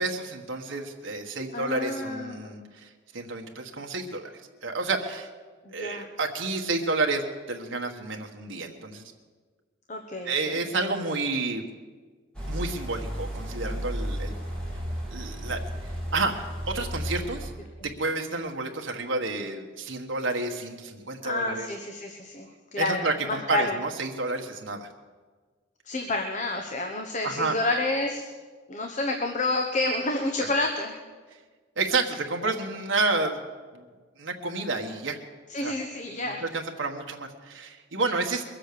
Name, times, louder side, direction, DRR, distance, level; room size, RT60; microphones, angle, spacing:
voice 1, 0.0-4.3 4.6-5.3 5.7-9.1 10.2-11.6 12.5-14.3 15.1-15.6 16.1-17.5 18.0-21.7 22.8-24.9 27.2-27.5 31.8-33.4 33.7-33.8 34.2-35.2 35.6-35.7 36.1-38.4, right 3 dB, 75° right, 2 dB, 1.4 m, -30 dB
voice 2, 1.5-2.7 5.6-6.1 9.9-10.6 17.8-17.9 21.2-23.8 25.9-28.3 28.7-30.9 35.5-36.4, left 2 dB, 40° left, 3 dB, 1.1 m, -29 dB
sound 1, 12.3-17.5, equal, 5° left, 3.0 m, -33 dB
22.0 x 7.6 x 6.7 m, 1.4 s
head